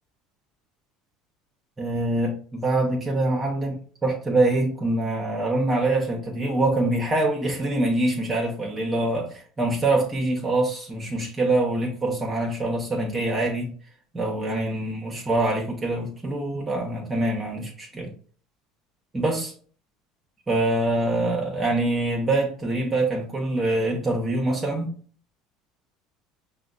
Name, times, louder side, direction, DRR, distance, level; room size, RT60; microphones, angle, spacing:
voice 1, 1.8-13.7 14.1-18.1 19.1-19.5 20.5-24.9, right 2 dB, 25° right, 0.9 m, -24 dB
5.0 x 2.2 x 2.4 m
supercardioid pair, 85°, 0 cm